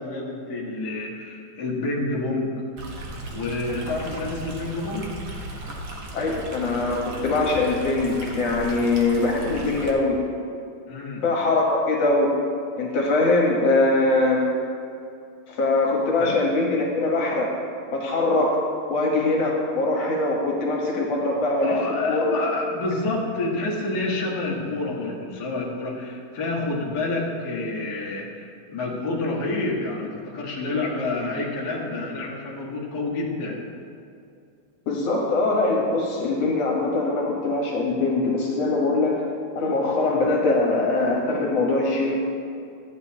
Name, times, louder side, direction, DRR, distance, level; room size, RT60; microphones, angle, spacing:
voice 1, 0.0-2.5 3.3-5.2 10.9-11.2 16.2-16.3 21.6-33.6, left 2 dB, 45° left, -4 dB, 1.4 m, -28 dB
Stream, 2.8-9.9, right 1 dB, 90° right, 0.9 m, -36 dB
voice 2, 6.1-10.2 11.2-12.4 12.8-14.4 15.5-17.5 17.9-18.6 18.9-21.8 22.0-22.3 34.9-39.2 39.6-42.2, left 2 dB, 60° left, -2 dB, 2.1 m, -22 dB
13.5 x 9.3 x 2.8 m, 2.5 s
omnidirectional pair, 3.4 m